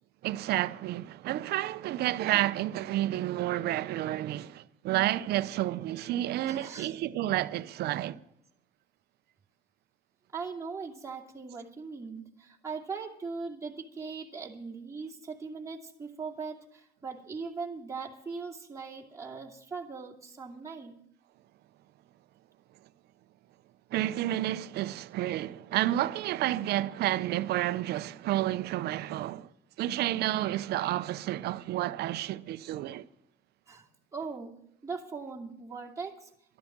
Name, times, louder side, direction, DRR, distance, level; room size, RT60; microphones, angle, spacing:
voice 1, 0.2-8.2 23.9-29.5 29.8-33.1, right 14 dB, 75° right, 0.6 m, -30 dB
voice 2, 6.5-6.9 10.3-21.0 33.7-36.3, right 4 dB, 15° right, 2.6 m, -40 dB
13.0 x 12.0 x 7.4 m
cardioid pair, 110°, 17 cm